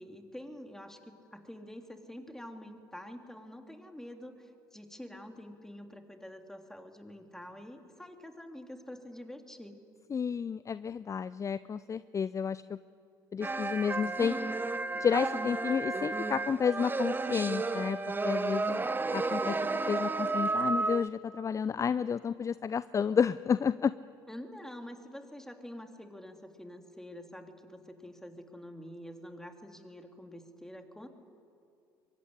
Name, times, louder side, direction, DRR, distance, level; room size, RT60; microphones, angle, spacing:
voice 1, 0.0-9.8 24.3-31.1, left 1 dB, 5° left, 5 dB, 3.3 m, -47 dB
voice 2, 10.1-12.8 13.3-14.3 15.0-18.9 19.1-19.6 19.9-23.9, left 6 dB, 30° left, 17 dB, 0.6 m, -31 dB
sound 1, 13.4-21.1, right 3 dB, 20° right, 1.3 m, -32 dB
24.0 x 23.5 x 9.9 m, 2.5 s
figure-of-eight pair, 60°, 11 cm